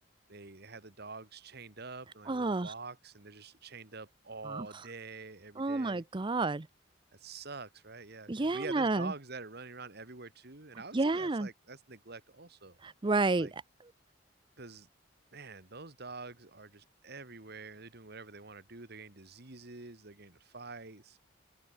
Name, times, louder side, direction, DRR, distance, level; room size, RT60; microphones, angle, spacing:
voice 1, 0.3-6.0 7.1-12.8 13.4-13.5 14.6-14.9 15.3-21.2, right 3 dB, 55° right, 2.4 m, -46 dB
voice 2, 2.3-2.7 4.4-4.7 5.6-6.7 8.3-9.1 10.9-11.5 12.8-13.5, right 3 dB, 25° right, 0.6 m, -30 dB
head